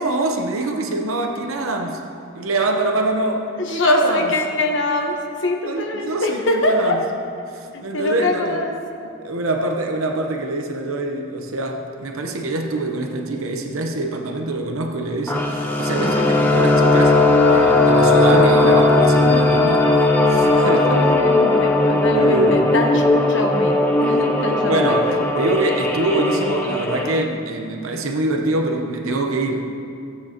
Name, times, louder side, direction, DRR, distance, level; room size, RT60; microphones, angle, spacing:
voice 1, 0.0-2.0 2.3-4.3 5.7-7.0 7.8-8.6 9.2-17.2 17.5-21.0 22.1-22.7 24.7-29.8, right 2 dB, 85° right, 3 dB, 0.9 m, -24 dB
voice 2, 3.6-7.0 7.9-8.7 16.0-16.6 20.7-25.2, left 1 dB, 60° left, 2 dB, 1.1 m, -23 dB
sound 1, 15.3-27.2, left 2 dB, 10° left, 0.6 m, -17 dB
16.5 x 8.6 x 2.9 m, 2.6 s
head